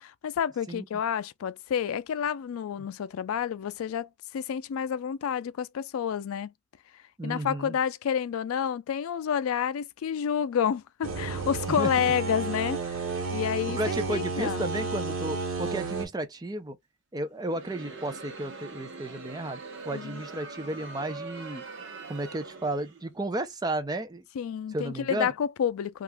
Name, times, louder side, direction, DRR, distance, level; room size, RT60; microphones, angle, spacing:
voice 1, 0.0-6.5 7.2-13.0 13.3-14.7 19.9-20.2 24.3-26.0, left 8 dB, 85° left, 0.3 m, -29 dB
voice 2, 7.2-7.8 11.7-11.9 13.8-16.8 17.1-19.6 19.9-21.6 22.1-24.2 24.7-25.3, right 1 dB, 20° right, 0.5 m, -33 dB
sound 1, 11.0-16.1, right 4 dB, 85° right, 1.1 m, -32 dB
Crowd, 17.4-23.1, right 3 dB, 60° right, 0.9 m, -43 dB
2.8 x 2.4 x 3.3 m
head